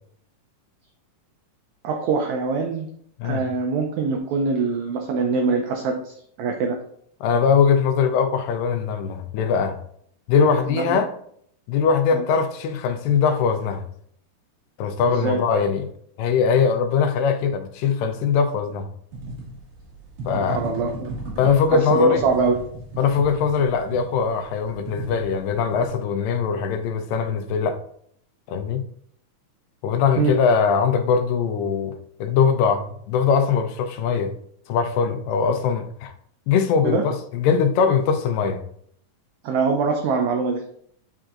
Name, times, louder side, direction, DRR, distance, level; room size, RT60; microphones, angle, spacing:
voice 1, 1.8-2.9 3.2-6.8 10.7-11.0 12.1-12.2 15.1-15.4 20.5-21.1 21.7-22.6 30.2-30.3 36.8-37.0 39.4-40.6, right 4 dB, 80° right, 1.7 m, -23 dB
voice 2, 7.2-9.8 10.3-11.1 11.7-13.8 14.8-15.9 16.2-18.9 20.3-20.6 21.4-22.2 23.0-27.8 28.5-28.8 29.8-34.3 34.7-36.1 36.5-38.6, left 6 dB, 85° left, 2.3 m, -21 dB
sound 1, 19.1-25.9, right 1 dB, 65° right, 3.5 m, -36 dB
10.5 x 3.8 x 2.5 m
omnidirectional pair, 3.9 m